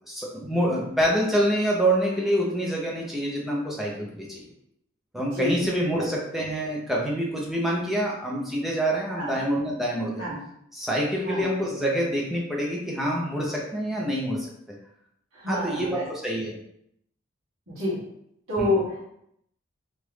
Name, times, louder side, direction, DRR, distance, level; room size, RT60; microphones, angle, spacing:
voice 1, 0.1-4.4 5.1-10.3 10.7-14.5 15.5-16.6 18.6-18.8, equal, ahead, -4 dB, 0.6 m, -26 dB
voice 2, 5.1-5.7 6.0-6.1 9.1-9.4 10.2-10.4 11.2-11.5 15.3-16.0 17.7-18.0 18.5-19.0, left 1 dB, 70° right, -7 dB, 1.3 m, -29 dB
3.0 x 2.5 x 3.2 m, 0.74 s
head